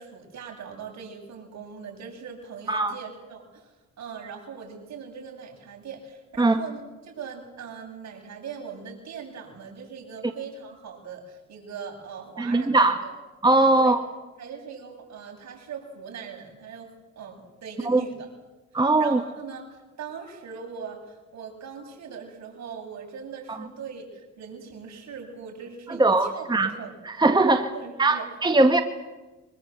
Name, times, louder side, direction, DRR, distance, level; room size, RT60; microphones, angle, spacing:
voice 1, 0.0-13.1 13.7-13.9 14.4-16.9 17.2-18.2 19.0-26.9 27.4-28.3, right 6 dB, 65° right, 1 dB, 7.9 m, -40 dB
voice 2, 12.4-13.0 13.4-14.0 17.8-18.0 18.7-19.2 23.5-23.6 25.9-26.7 27.1-27.6 28.0-28.8, right 2 dB, 15° right, 6 dB, 1.7 m, -20 dB
24.5 x 22.5 x 8.1 m, 1.1 s
cardioid pair, 90°, 30 cm